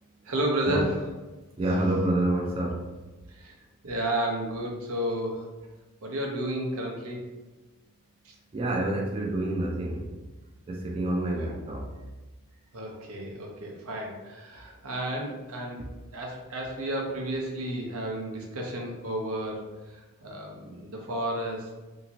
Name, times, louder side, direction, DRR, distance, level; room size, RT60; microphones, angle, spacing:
voice 1, 0.2-1.1 3.3-3.6 3.8-5.5 6.0-7.2 8.2-8.3 11.4-11.5 12.7-21.7, right 1 dB, 85° right, -1 dB, 0.7 m, -32 dB
voice 2, 1.6-2.8 8.5-10.1 10.7-11.9 14.5-14.6, right 1 dB, 25° right, -1 dB, 0.3 m, -28 dB
2.8 x 2.5 x 2.8 m, 1.2 s
head